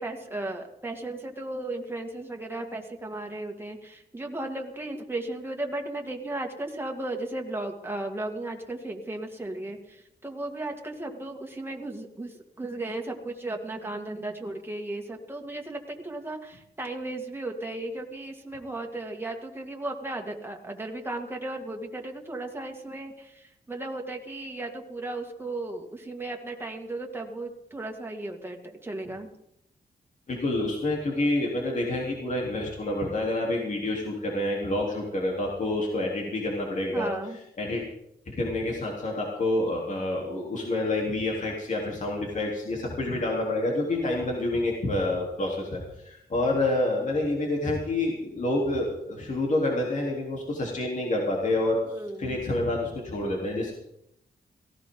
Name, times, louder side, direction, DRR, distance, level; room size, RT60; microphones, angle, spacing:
voice 1, 0.0-28.6 28.8-29.3 36.9-37.4 51.9-52.4, right 2 dB, 15° right, 1 dB, 2.4 m, -35 dB
voice 2, 30.3-37.1 37.6-37.8 38.3-53.7, left 2 dB, 50° left, -2 dB, 3.7 m, -28 dB
18.0 x 16.5 x 4.0 m, 0.77 s
wide cardioid pair, 100°, 17 cm